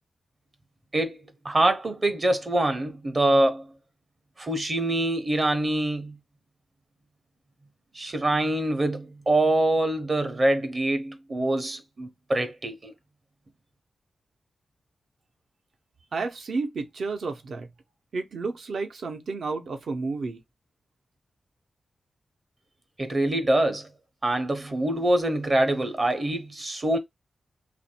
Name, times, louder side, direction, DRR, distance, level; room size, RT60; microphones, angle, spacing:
voice 1, 1.4-3.7 4.4-6.2 7.9-12.9 23.0-23.9 24.2-27.0, right 1 dB, 30° right, 0.7 m, -24 dB
voice 2, 16.1-17.7 18.1-20.4, right 4 dB, 65° right, 0.8 m, -31 dB
3.0 x 2.6 x 4.2 m
wide cardioid pair, 150°, 0 cm